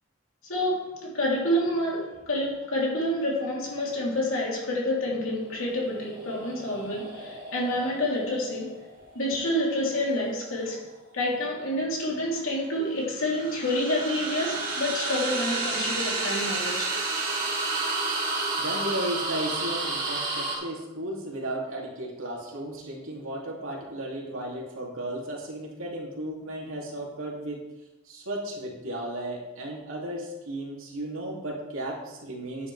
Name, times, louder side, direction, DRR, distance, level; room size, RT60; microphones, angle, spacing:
voice 1, 0.5-8.8 9.1-16.9, left 1 dB, 80° left, -4 dB, 3.1 m, -28 dB
sound 1, 5.4-10.6 13.0-20.6, right 3 dB, 40° right, 2.3 m, -31 dB
voice 2, 18.6-27.6 28.0-32.7, right 1 dB, 80° right, -3 dB, 2.6 m, -34 dB
9.8 x 9.6 x 3.3 m, 1.0 s
head